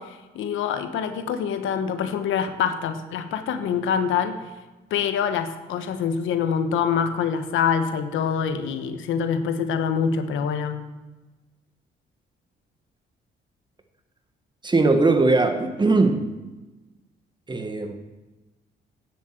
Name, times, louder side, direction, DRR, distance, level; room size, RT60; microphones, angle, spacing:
voice 1, 0.0-4.5 4.9-10.8, left 7 dB, 85° left, 1.2 m, -25 dB
voice 2, 14.6-16.3 17.5-18.0, right 3 dB, 20° right, 1.5 m, -20 dB
9.9 x 7.7 x 7.8 m
cardioid pair, 90°, 20 cm